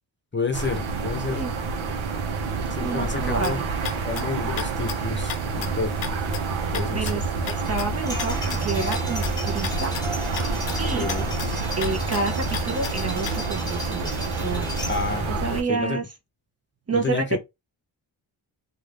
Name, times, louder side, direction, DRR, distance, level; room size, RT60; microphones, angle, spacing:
voice 1, 0.3-1.4 2.7-3.6 4.0-6.1 6.7-7.2 11.0-11.3 14.9-15.4 15.7-16.0 16.9-17.4, left 4 dB, 25° left, 0.8 m, -30 dB
sound 1, 0.5-15.6, right 4 dB, 75° right, 0.8 m, -28 dB
voice 2, 2.8-3.6 6.9-11.1 11.7-14.7 15.4-16.0 16.9-17.4, right 4 dB, 30° right, 0.7 m, -29 dB
sound 2, 3.2-13.4, left 10 dB, 85° left, 0.6 m, -37 dB
sound 3, 7.5-15.3, left 1 dB, 10° left, 1.2 m, -35 dB
2.6 x 2.4 x 3.3 m
cardioid pair, 65°, 48 cm